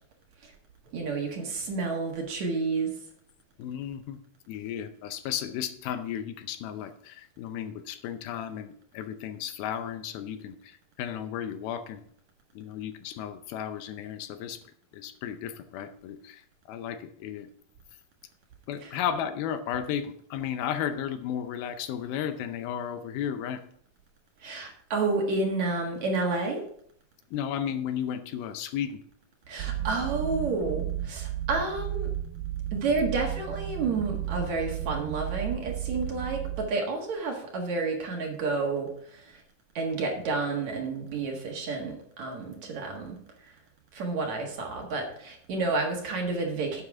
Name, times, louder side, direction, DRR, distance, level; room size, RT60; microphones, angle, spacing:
voice 1, 0.9-2.9 18.8-18.9 24.4-26.6 29.5-32.1 32.7-39.4 39.8-43.5 43.9-46.8, right 3 dB, 55° right, 1 dB, 2.6 m, -30 dB
voice 2, 3.6-4.2 4.5-12.0 12.5-14.6 14.9-17.5 18.7-23.6 27.3-29.0, left 9 dB, 80° left, 9 dB, 2.6 m, -34 dB
sound 1, 29.6-36.7, right 12 dB, 80° right, 2.3 m, -33 dB
11.5 x 8.9 x 3.6 m, 0.63 s
omnidirectional pair, 4.4 m